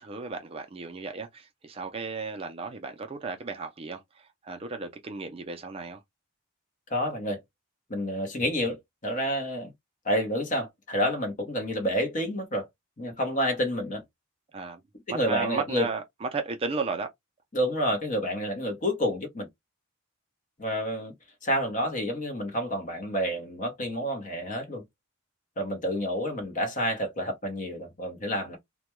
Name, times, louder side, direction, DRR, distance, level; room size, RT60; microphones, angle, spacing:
voice 1, 0.0-6.0 14.5-14.8 15.1-17.1, right 4 dB, 25° right, 0.4 m, -34 dB
voice 2, 6.9-7.4 7.9-9.7 10.0-12.7 13.0-14.0 15.1-15.9 17.5-19.5 20.6-21.1 21.4-24.8 25.6-28.6, equal, 35° left, 0.8 m, -29 dB
2.2 x 2.1 x 2.9 m
head